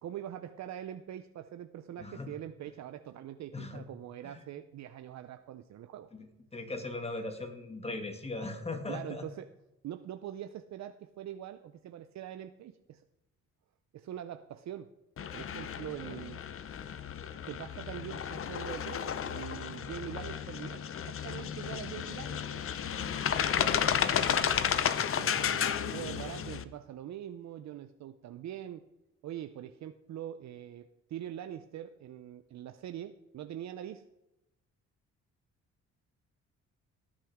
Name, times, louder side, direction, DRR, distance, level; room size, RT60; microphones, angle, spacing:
voice 1, 0.0-6.1 8.9-9.5 9.8-13.0 13.9-14.9 15.3-16.4 17.5-22.6 25.1-28.8 29.2-34.1, right 11 dB, 65° right, 9 dB, 0.7 m, -43 dB
voice 2, 2.0-2.3 3.5-3.8 4.2-4.5 6.1-9.3 16.0-16.2 23.6-23.9, left 2 dB, 20° left, 6 dB, 2.1 m, -39 dB
sound 1, 15.2-26.6, left 8 dB, 45° left, 0.8 m, -33 dB
18.5 x 8.9 x 3.6 m, 0.93 s
cardioid pair, 90°, 30 cm